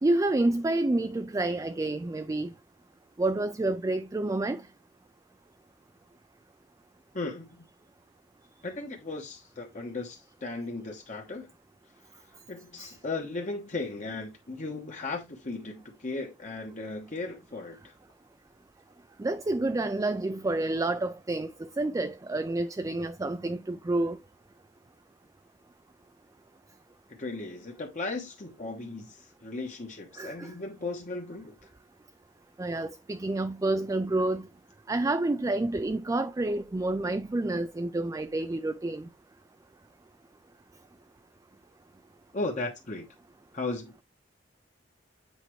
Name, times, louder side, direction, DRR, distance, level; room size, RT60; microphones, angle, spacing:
voice 1, 0.0-2.5 3.2-4.6 12.8-12.9 19.2-24.2 30.2-30.5 32.6-34.5 34.9-39.1, right 2 dB, 20° right, 0.4 m, -29 dB
voice 2, 7.1-7.6 8.6-11.5 12.5-17.9 27.1-31.7 42.3-43.1 43.5-44.0, left 3 dB, 45° left, 1.1 m, -36 dB
8.1 x 4.5 x 3.1 m
head